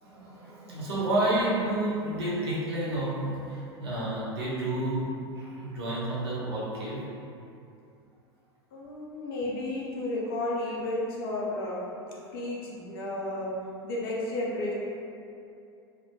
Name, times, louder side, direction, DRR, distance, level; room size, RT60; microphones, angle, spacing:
voice 1, 0.0-5.1 5.3-7.0, right 1 dB, 65° right, -7 dB, 0.8 m, -30 dB
voice 2, 8.7-11.8 12.3-13.5 13.8-14.7, left 2 dB, 55° left, -5 dB, 0.5 m, -32 dB
2.2 x 2.1 x 3.0 m, 2.6 s
figure-of-eight pair, 85°, 14 cm